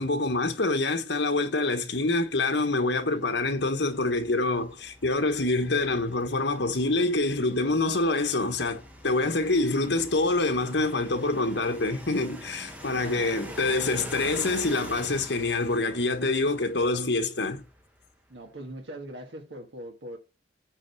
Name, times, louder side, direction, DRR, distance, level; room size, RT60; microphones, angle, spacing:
voice 1, 0.0-17.6, left 2 dB, 70° left, 1.3 m, -26 dB
sound 1, 2.0-18.1, equal, 10° right, 1.3 m, -46 dB
voice 2, 12.9-13.6 18.3-20.2, right 1 dB, 80° right, 1.6 m, -41 dB
8.9 x 3.7 x 6.8 m
head